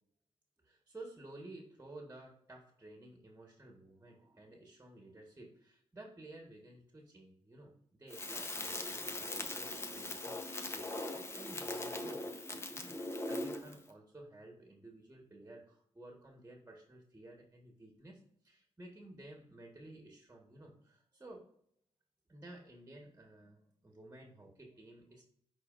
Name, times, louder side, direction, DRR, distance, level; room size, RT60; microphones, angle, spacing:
voice 1, 0.6-21.4 22.3-25.2, right 1 dB, 20° right, 1 dB, 1.5 m, -54 dB
Crackle, 8.1-13.8, left 2 dB, 25° left, 1.0 m, -40 dB
10.5 x 4.1 x 2.6 m, 0.69 s
cardioid pair, 75°, 10 cm